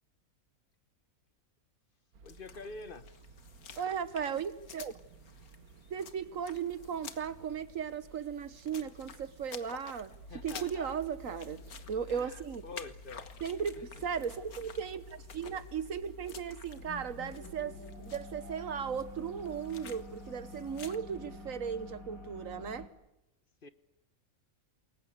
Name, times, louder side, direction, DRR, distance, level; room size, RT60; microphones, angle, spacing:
sound 1, 2.1-22.0, right 5 dB, 90° right, 1.8 m, -57 dB
voice 1, 2.2-3.2 10.1-10.9 12.1-13.2 23.6-23.7, left 3 dB, 40° left, 12 dB, 1.3 m, -47 dB
sound 2, 2.3-21.0, left 7 dB, 85° left, 1.9 m, -52 dB
voice 2, 3.8-4.9 5.9-10.1 10.4-12.6 13.4-22.9, right 7 dB, 65° right, 14 dB, 1.6 m, -37 dB
sound 3, 10.2-22.9, left 2 dB, 70° left, 3.4 m, -49 dB
28.5 x 22.0 x 8.2 m, 0.93 s
omnidirectional pair, 1.5 m